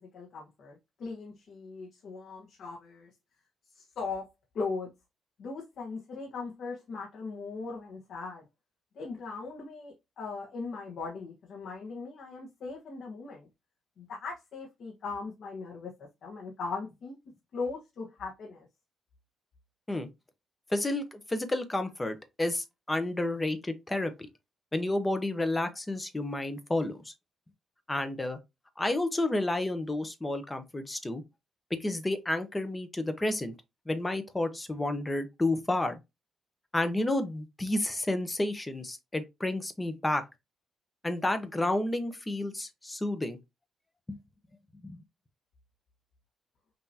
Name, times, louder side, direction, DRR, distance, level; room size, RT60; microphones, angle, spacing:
voice 1, 0.0-3.1 3.7-4.3 4.5-4.9 5.4-8.4 8.9-13.5 14.0-17.2 17.5-18.7, left 4 dB, 70° left, 1.2 m, -39 dB
voice 2, 20.7-24.1 24.7-27.1 27.9-28.4 28.8-31.2 31.7-33.5 33.9-36.0 36.7-40.2 41.0-43.4 44.1-44.2 44.8-45.0, left 2 dB, 15° left, 0.9 m, -31 dB
5.7 x 2.9 x 2.8 m
cardioid pair, 95°, 0 cm